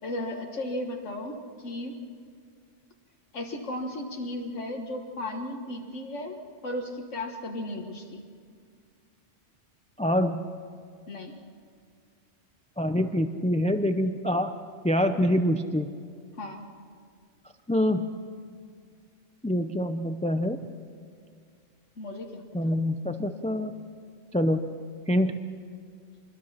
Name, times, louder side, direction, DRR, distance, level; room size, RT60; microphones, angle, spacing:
voice 1, 0.0-2.0 3.3-8.2 11.1-11.4 16.4-16.6 22.0-22.7, left 1 dB, 80° left, 2 dB, 1.8 m, -35 dB
voice 2, 10.0-10.5 12.8-14.5 14.8-15.9 17.7-18.1 19.4-20.6 22.5-23.7 24.3-24.6 25.1-25.4, equal, 10° left, 7 dB, 0.5 m, -25 dB
25.5 x 21.5 x 5.8 m, 2.2 s
omnidirectional pair, 1.2 m